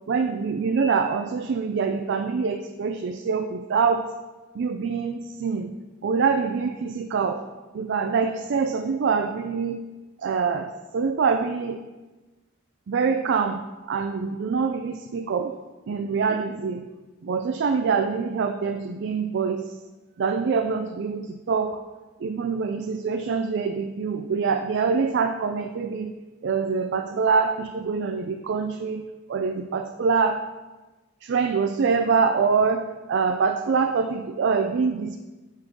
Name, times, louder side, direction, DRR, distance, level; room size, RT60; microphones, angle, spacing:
voice 1, 0.1-4.1 4.6-5.7 6.0-7.4 7.7-9.8 10.2-11.8 12.9-15.5 15.9-16.8 17.2-19.6 20.2-21.8 22.2-26.1 26.4-29.0 29.3-30.4 31.2-35.2, right 5 dB, 60° right, 7 dB, 0.4 m, -25 dB
9.0 x 5.4 x 3.6 m, 1.2 s
head